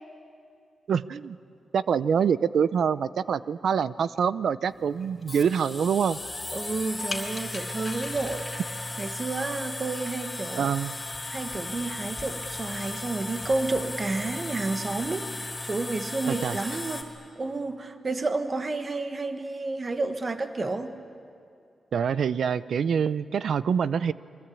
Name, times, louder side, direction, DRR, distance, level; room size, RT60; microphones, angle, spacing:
voice 1, 0.9-1.4 1.7-6.2 10.6-10.9 16.3-16.6 21.9-24.1, right 7 dB, 75° right, 16 dB, 0.6 m, -25 dB
sound 1, 4.6-17.0, left 2 dB, 20° left, 3.4 m, -36 dB
voice 2, 6.5-8.5 9.0-10.9 11.3-17.1 17.3-21.0, right 3 dB, 30° right, 7 dB, 1.3 m, -31 dB
29.0 x 23.5 x 8.5 m, 2.4 s
wide cardioid pair, 140°, 0 cm